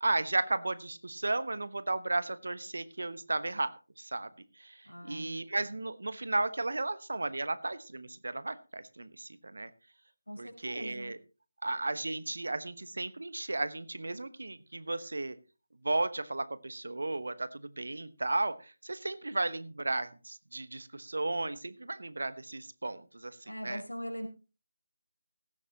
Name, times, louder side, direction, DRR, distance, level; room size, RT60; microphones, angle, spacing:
voice 1, 0.0-3.7 4.0-4.3 4.6-9.7 10.4-11.2 11.6-15.4 15.8-23.4 23.6-23.8, right 2 dB, 60° right, 14 dB, 1.1 m, -34 dB
voice 2, 4.8-5.4 10.3-11.1 23.4-24.3, equal, 80° left, 3 dB, 4.5 m, -41 dB
16.5 x 14.0 x 2.9 m, 0.32 s
figure-of-eight pair, 160°, 0 cm